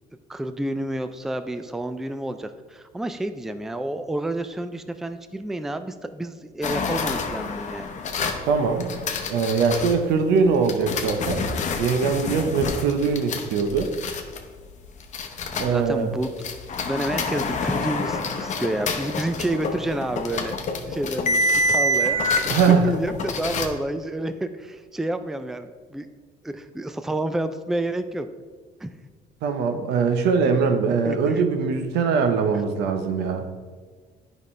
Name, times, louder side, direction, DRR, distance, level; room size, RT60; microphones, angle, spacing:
voice 1, 0.3-7.9 15.5-16.3 16.8-20.6 20.9-26.1 26.4-28.3 28.8-28.9 31.0-31.4, right 1 dB, ahead, 10 dB, 0.3 m, -29 dB
sound 1, 6.6-9.9 10.7-15.9 16.2-23.7, left 2 dB, 45° left, 0.8 m, -27 dB
voice 2, 8.5-8.9 9.3-11.4 11.8-13.9 15.6-16.1 22.5-22.9 29.4-33.4, right 5 dB, 85° right, 6 dB, 0.8 m, -22 dB
9.8 x 5.2 x 3.2 m, 1.5 s
cardioid pair, 110°, 17 cm